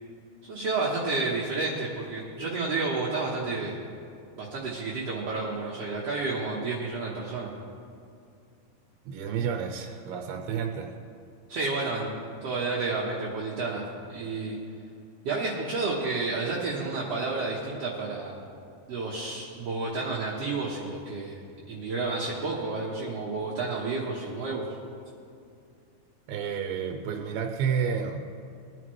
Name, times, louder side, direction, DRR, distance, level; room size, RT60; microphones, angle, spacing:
voice 1, 0.4-3.8 4.4-7.5 11.5-12.1 12.4-14.6 15.2-18.4 18.9-21.4 21.7-24.7, right 3 dB, 65° right, -5 dB, 1.6 m, -30 dB
voice 2, 9.1-10.9 26.3-28.3, right 7 dB, 85° right, 4 dB, 2.6 m, -30 dB
21.0 x 10.5 x 3.2 m, 2.5 s
omnidirectional pair, 4.4 m